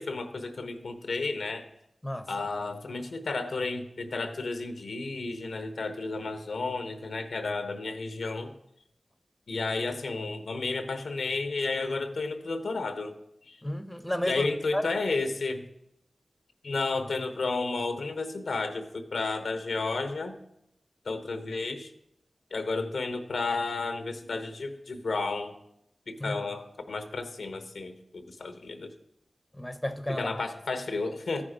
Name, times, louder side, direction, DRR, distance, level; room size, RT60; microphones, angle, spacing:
voice 1, 0.0-1.7 2.3-8.5 9.5-13.1 13.5-13.6 14.3-15.7 16.6-20.4 21.0-21.9 22.5-25.5 26.1-28.9 30.1-31.4, left 3 dB, 85° left, 0.9 m, -32 dB
voice 2, 13.6-14.5 14.7-14.9 26.2-26.4 29.5-30.3, left 1 dB, 10° left, 0.8 m, -32 dB
13.5 x 5.3 x 5.0 m
cardioid pair, 40°, 0 cm